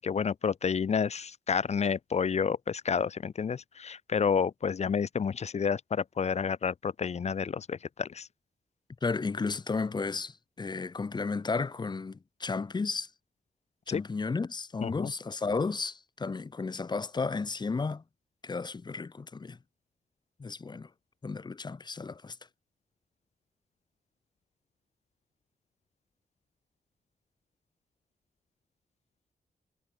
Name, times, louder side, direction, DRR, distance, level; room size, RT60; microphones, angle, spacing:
voice 1, 0.0-8.3 13.9-14.0 14.8-15.1, left 6 dB, 45° left, 0.8 m, -30 dB
voice 2, 9.0-13.1 13.9-18.0 18.4-19.6 20.4-20.9 21.2-22.4, left 4 dB, 25° left, 1.1 m, -33 dB
wide cardioid pair, 155°, 16 cm